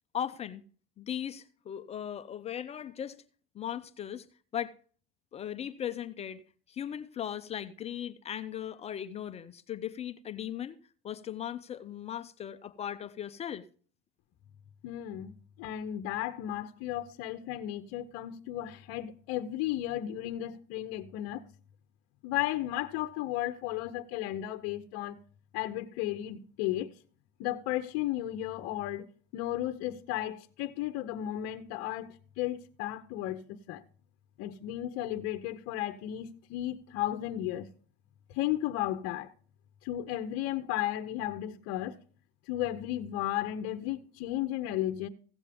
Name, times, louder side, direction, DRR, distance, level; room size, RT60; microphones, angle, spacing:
voice 1, 0.1-0.6 1.0-3.2 3.5-4.3 4.5-4.7 5.3-6.4 6.7-10.8 11.0-13.7, left 10 dB, 20° left, 0.4 m, -38 dB
voice 2, 14.8-21.4 22.2-25.2 25.5-26.9 27.4-29.1 29.3-33.8 34.4-37.7 38.3-39.3 39.8-42.0 42.5-45.1, left 13 dB, 50° left, 0.8 m, -34 dB
15.5 x 7.2 x 3.4 m
supercardioid pair, 140°, 31 cm